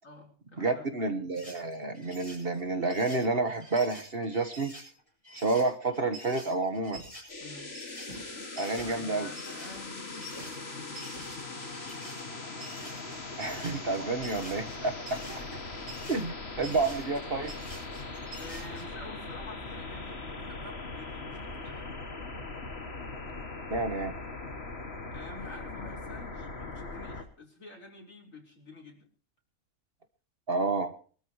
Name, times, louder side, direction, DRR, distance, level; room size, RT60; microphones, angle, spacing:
voice 1, 0.0-1.1 7.4-7.7 8.7-11.3 15.1-15.8 16.4-16.8 18.4-21.9 25.1-29.1, left 2 dB, 65° left, 0 dB, 5.2 m, -48 dB
voice 2, 0.6-4.7 5.3-7.0 8.6-9.3 13.4-15.0 16.1-17.5 23.7-24.1 30.5-30.9, right 3 dB, 45° right, 8 dB, 1.5 m, -29 dB
sound 1, 1.3-18.8, equal, 25° left, 7.8 m, -48 dB
sound 2, 6.9-14.4, right 1 dB, 75° right, 7.9 m, -53 dB
sound 3, 7.3-27.2, left 3 dB, 50° left, 2.3 m, -40 dB
23.5 x 13.0 x 3.1 m, 0.42 s
omnidirectional pair, 1.4 m